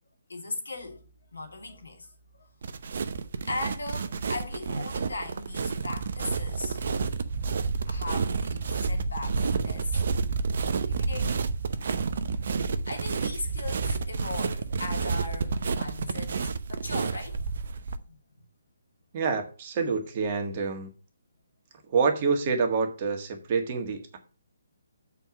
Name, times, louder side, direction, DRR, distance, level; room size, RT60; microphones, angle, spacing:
voice 1, 0.3-1.0 1.3-2.1 2.3-2.5 3.5-6.8 7.9-9.9 10.7-11.4 12.9-17.6 18.1-18.2, left 2 dB, 75° left, 2.5 m, -38 dB
sound 1, 2.6-18.0, right 4 dB, 55° right, 0.7 m, -30 dB
voice 2, 19.1-20.9 21.9-24.2, right 4 dB, 35° right, 1.6 m, -27 dB
7.0 x 4.7 x 7.0 m
figure-of-eight pair, 140°, 0 cm